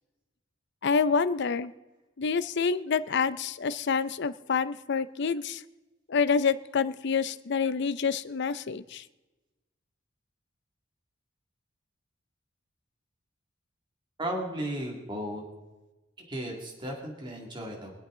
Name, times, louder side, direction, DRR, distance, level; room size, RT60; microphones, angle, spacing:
voice 1, 0.8-1.7 2.2-5.6 6.1-9.0, left 5 dB, 60° left, 14 dB, 0.6 m, -27 dB
voice 2, 14.2-15.4 16.2-17.9, right 1 dB, 25° right, -1 dB, 2.2 m, -35 dB
24.5 x 8.3 x 3.8 m, 1.1 s
head